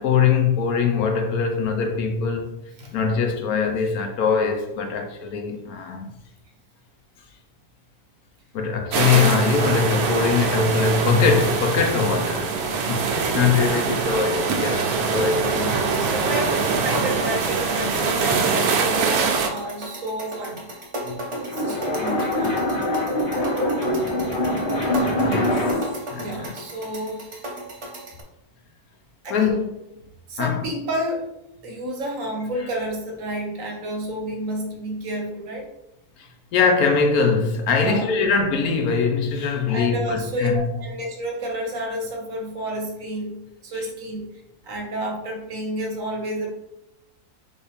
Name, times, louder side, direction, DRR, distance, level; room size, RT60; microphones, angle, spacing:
voice 1, 0.0-2.6 2.9-6.1 8.5-16.1 25.2-25.8 26.1-26.5 29.3-29.7 30.4-30.7 36.2-40.8 43.7-43.9, left 5 dB, 70° left, 1.1 m, -22 dB
sound 1, 8.9-19.5, right 5 dB, 75° right, 1.1 m, -23 dB
sound 2, 15.0-28.2, right 1 dB, 40° right, 0.4 m, -35 dB
voice 2, 15.5-20.7 21.5-22.6 26.2-27.3 29.2-29.6 30.3-31.2 31.6-35.7 37.8-38.1 39.7-44.3 44.6-46.5, right 1 dB, 60° right, 1.2 m, -30 dB
sound 3, 21.1-26.0, left 1 dB, 45° left, 0.7 m, -24 dB
4.2 x 3.3 x 3.4 m
omnidirectional pair, 1.7 m